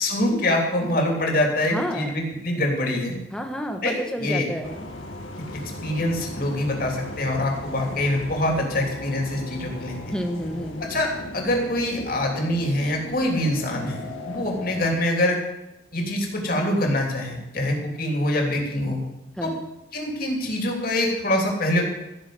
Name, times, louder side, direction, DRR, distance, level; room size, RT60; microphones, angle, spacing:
voice 1, 0.0-3.2 3.8-4.5 5.8-9.9 10.9-15.4 15.9-19.0 19.4-19.5 19.9-21.8, left 1 dB, 45° left, 1 dB, 3.3 m, -24 dB
voice 2, 1.7-2.1 3.3-4.9 10.1-10.9 19.4-19.6, equal, 5° left, 3 dB, 1.4 m, -30 dB
sound 1, 4.6-14.9, left 1 dB, 85° left, 1.9 m, -37 dB
15.5 x 6.9 x 7.8 m, 0.98 s
head